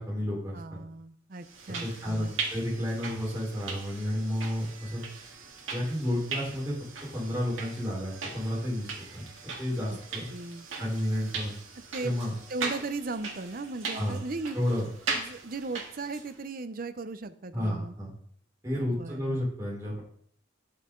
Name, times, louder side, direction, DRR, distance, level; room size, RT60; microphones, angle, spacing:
voice 1, 0.0-0.8 1.8-5.0 5.7-6.8 7.1-9.3 9.6-10.3 10.8-11.6 12.0-12.3 13.9-14.2 14.5-14.8 17.5-18.1 18.6-20.0, equal, 15° right, -6 dB, 4.2 m, -31 dB
voice 2, 0.5-2.3 9.9-10.0 10.3-10.7 11.9-12.1 12.5-14.6 15.1-17.9 18.9-19.4, right 3 dB, 45° right, 11 dB, 0.6 m, -37 dB
sound 1, 1.4-16.4, right 4 dB, 85° right, 2.0 m, -39 dB
10.5 x 6.6 x 3.8 m, 0.62 s
head